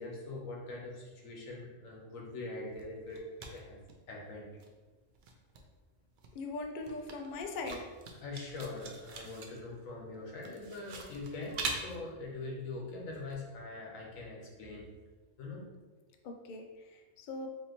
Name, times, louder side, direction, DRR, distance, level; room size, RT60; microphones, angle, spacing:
voice 1, 0.0-3.8 4.1-4.5 8.2-14.9 15.4-15.6, left 2 dB, 85° left, -1 dB, 1.3 m, -43 dB
sound 1, 2.7-4.3 4.6-13.4, right 3 dB, 65° right, 0.5 m, -44 dB
voice 2, 6.3-7.8 16.2-16.6 16.9-17.5, left 3 dB, 65° left, 3 dB, 0.5 m, -40 dB
4.3 x 2.7 x 2.9 m, 1.3 s
omnidirectional pair, 1.3 m